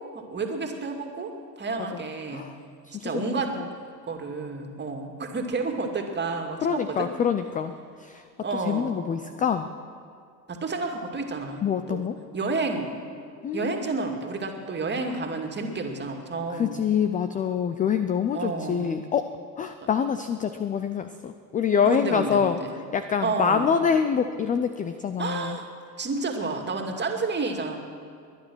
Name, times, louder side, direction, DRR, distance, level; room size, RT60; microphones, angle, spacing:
voice 1, 0.1-1.3 1.6-2.5 3.0-3.5 4.1-7.1 8.4-9.0 10.5-11.6 11.9-12.1 12.3-12.9 13.5-16.8 18.3-19.0 21.8-22.7 23.2-23.8 25.2-25.7 26.0-27.8, right 3 dB, 20° right, 3 dB, 2.3 m, -30 dB
voice 2, 2.8-3.7 6.6-7.7 8.0-8.2 8.7-9.7 11.6-12.2 13.4-14.0 16.5-19.3 19.6-22.6 22.9-25.6, left 7 dB, 15° left, 10 dB, 0.5 m, -26 dB
22.0 x 9.9 x 6.2 m, 2.3 s
hypercardioid pair, 95°, 49 cm